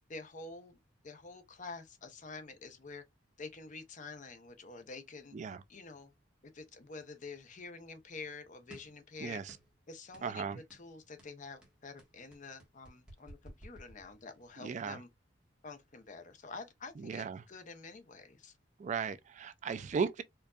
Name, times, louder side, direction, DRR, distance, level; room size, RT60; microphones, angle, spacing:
voice 1, 0.1-0.8 1.0-3.0 3.4-5.4 5.7-6.1 6.5-9.4 9.9-15.1 15.6-18.6, left 4 dB, 40° left, 0.7 m, -48 dB
sound 1, 8.7-9.0 9.5-9.8 10.1-10.3 10.7-10.9 11.2-14.5, right 1 dB, 5° right, 1.3 m, -55 dB
voice 2, 9.2-9.6 10.2-10.6 14.6-15.0 17.0-17.4 18.8-20.2, right 6 dB, 40° right, 0.3 m, -36 dB
4.5 x 2.6 x 2.3 m
head